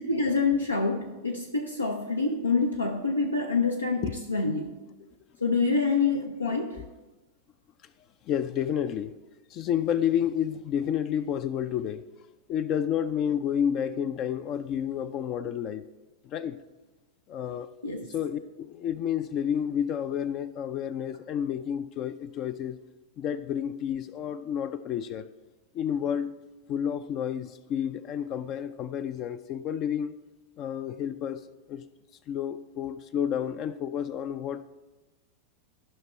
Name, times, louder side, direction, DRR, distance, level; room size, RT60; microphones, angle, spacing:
voice 1, 0.0-4.7 5.4-6.8 17.8-18.1, left 4 dB, 85° left, 0.7 m, -26 dB
voice 2, 6.5-6.8 8.3-9.1 9.5-12.0 12.5-15.8 16.2-16.6 17.3-17.7 18.1-22.8 23.2-25.3 25.7-26.3 26.7-30.2 30.6-31.4 31.7-31.9 32.3-34.6, left 9 dB, 35° left, 0.4 m, -30 dB
14.0 x 5.8 x 4.4 m
figure-of-eight pair, 90°, 0 cm